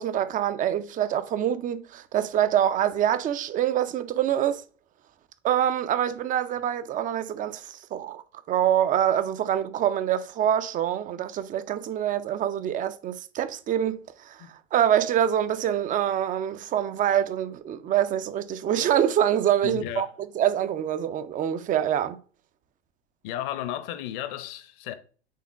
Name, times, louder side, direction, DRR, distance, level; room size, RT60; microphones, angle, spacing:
voice 1, 0.0-4.6 5.4-8.2 8.5-14.4 14.7-20.1 20.4-22.2, right 10 dB, 25° right, 0.5 m, -25 dB
voice 2, 19.6-20.1 23.2-24.9, left 12 dB, 50° left, 1.0 m, -33 dB
8.4 x 3.6 x 3.6 m
figure-of-eight pair, 85°, 34 cm